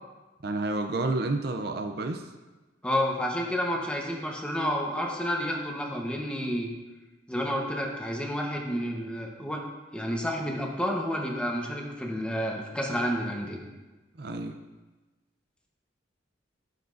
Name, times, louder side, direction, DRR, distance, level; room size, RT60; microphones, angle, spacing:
voice 1, 0.4-2.2 14.2-14.6, right 2 dB, 55° right, 6 dB, 0.6 m, -30 dB
voice 2, 2.8-6.7 7.3-9.6 9.9-13.6, equal, 5° left, 0 dB, 1.0 m, -30 dB
12.5 x 7.0 x 2.6 m, 1.2 s
head